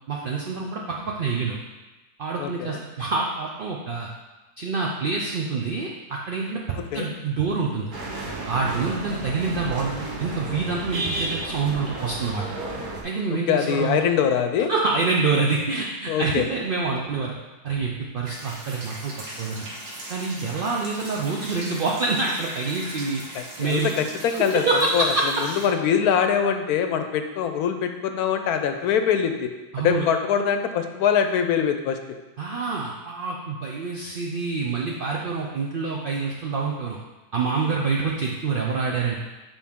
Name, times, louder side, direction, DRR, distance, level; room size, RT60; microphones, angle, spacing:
voice 1, 0.1-1.6 2.2-4.1 4.6-7.9 8.5-12.5 13.0-14.0 14.7-17.3 17.6-19.7 20.1-23.9 24.5-25.2 29.7-30.0 32.4-37.0 37.3-39.1, right 4 dB, 65° right, -2 dB, 0.5 m, -26 dB
voice 2, 2.4-2.8 6.8-7.1 9.3-9.4 13.5-14.7 16.1-16.5 23.3-24.6 24.9-25.1 25.4-29.5 29.8-32.0, left 8 dB, 75° left, 7 dB, 1.1 m, -23 dB
sound 1, 7.9-13.0, right 2 dB, 40° right, 0.9 m, -32 dB
sound 2, 18.3-25.7, right 1 dB, 90° right, 1.7 m, -39 dB
7.2 x 4.6 x 3.6 m, 1.1 s
omnidirectional pair, 1.7 m